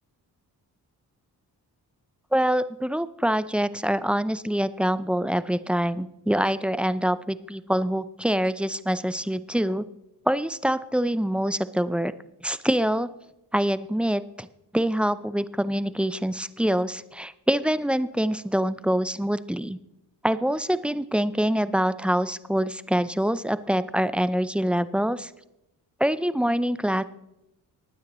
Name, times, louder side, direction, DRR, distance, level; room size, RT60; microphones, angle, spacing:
voice 1, 2.3-9.8 10.3-12.1 12.4-13.1 13.5-14.5 14.7-19.8 20.2-25.3 26.0-27.0, equal, 5° right, 14 dB, 0.5 m, -25 dB
19.5 x 9.4 x 3.1 m, 0.88 s
cardioid pair, 75°, 39 cm